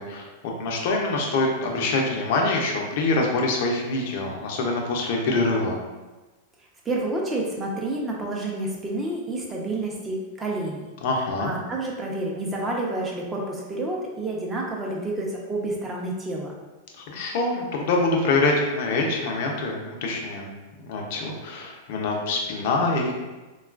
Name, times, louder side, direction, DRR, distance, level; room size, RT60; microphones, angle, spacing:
voice 1, 0.0-5.8 11.0-11.5 17.0-23.1, left 2 dB, 60° left, 0 dB, 0.6 m, -25 dB
voice 2, 6.8-10.9 11.4-16.5, right 2 dB, 20° right, -2 dB, 0.7 m, -29 dB
3.6 x 2.3 x 2.4 m, 1.2 s
hypercardioid pair, 120°, 0 cm